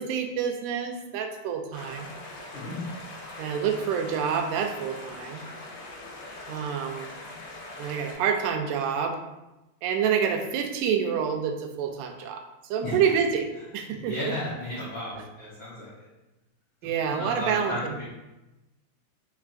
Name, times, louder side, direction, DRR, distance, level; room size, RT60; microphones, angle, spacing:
voice 1, 0.0-2.1 3.4-5.4 6.5-7.1 7.8-9.2 9.8-12.4 12.7-13.5 13.7-14.1 16.8-18.0, right 7 dB, 85° right, 5 dB, 2.0 m, -27 dB
sound 1, 1.7-8.1, left 2 dB, 85° left, 2.5 m, -42 dB
voice 2, 13.9-16.1 17.1-18.0, left 1 dB, 65° left, -10 dB, 1.2 m, -34 dB
4.5 x 4.5 x 2.5 m, 1.0 s
omnidirectional pair, 3.5 m